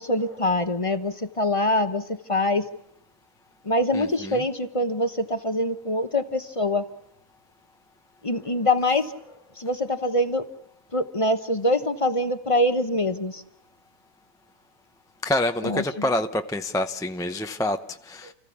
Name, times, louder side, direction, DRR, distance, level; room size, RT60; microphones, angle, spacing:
voice 1, 0.0-2.7 3.6-6.9 8.2-9.1 9.6-10.5 10.9-13.4 15.6-16.0, left 1 dB, 25° left, 10 dB, 1.0 m, -24 dB
voice 2, 3.9-4.5 15.2-18.3, left 1 dB, 5° left, 7 dB, 0.6 m, -27 dB
30.0 x 15.0 x 8.6 m, 0.74 s
omnidirectional pair, 1.4 m